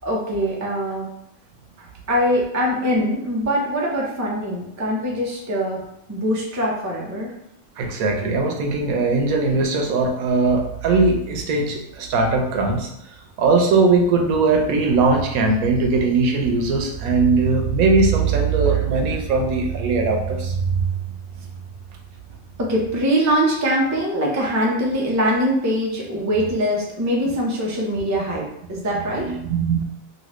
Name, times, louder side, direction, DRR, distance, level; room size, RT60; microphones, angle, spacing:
voice 1, 0.0-1.1 2.1-5.8 6.1-7.3 22.6-29.3, equal, 30° right, -3 dB, 0.3 m, -22 dB
voice 2, 7.8-12.9 13.4-20.9 29.1-29.8, right 4 dB, 90° right, 2 dB, 1.1 m, -20 dB
3.0 x 2.7 x 3.0 m, 0.79 s
omnidirectional pair, 1.4 m